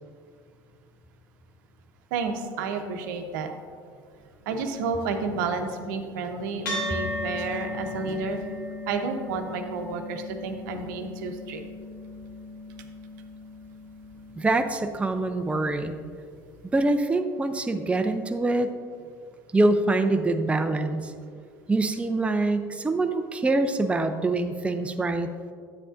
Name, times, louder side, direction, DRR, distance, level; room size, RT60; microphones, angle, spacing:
voice 1, 2.1-3.5 4.5-8.4 8.9-11.6, right 4 dB, 75° right, 5 dB, 0.8 m, -31 dB
sound 1, 6.7-15.3, left 1 dB, 90° left, 2.2 m, -36 dB
voice 2, 14.4-16.0 16.7-18.7 19.5-21.1 21.7-25.3, right 2 dB, 10° right, 7 dB, 0.5 m, -24 dB
9.8 x 8.5 x 2.5 m, 2.1 s
hypercardioid pair, 80°, 11 cm